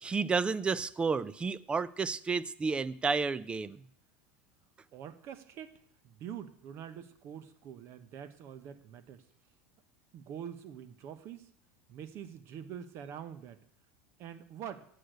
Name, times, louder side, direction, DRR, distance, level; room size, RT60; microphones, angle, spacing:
voice 1, 0.0-3.8, right 4 dB, 15° right, 18 dB, 0.5 m, -31 dB
voice 2, 4.9-9.2 10.1-11.5 11.9-13.6 14.2-14.9, right 9 dB, 50° right, 12 dB, 1.2 m, -45 dB
8.5 x 6.6 x 8.0 m, 0.65 s
supercardioid pair, 110°, 6 cm